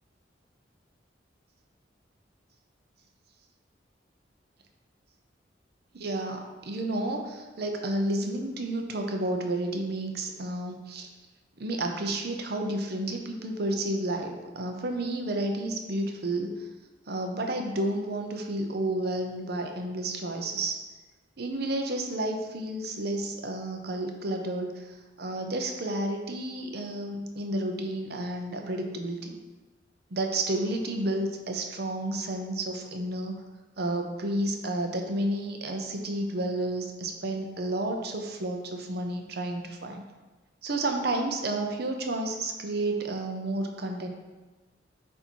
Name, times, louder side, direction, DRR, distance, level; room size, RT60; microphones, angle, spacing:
voice 1, 5.9-11.1 11.6-16.7 17.1-20.8 21.4-29.4 30.1-33.4 33.8-40.0 40.6-44.1, right 1 dB, 60° right, 3 dB, 0.7 m, -31 dB
7.7 x 2.7 x 4.6 m, 1.2 s
head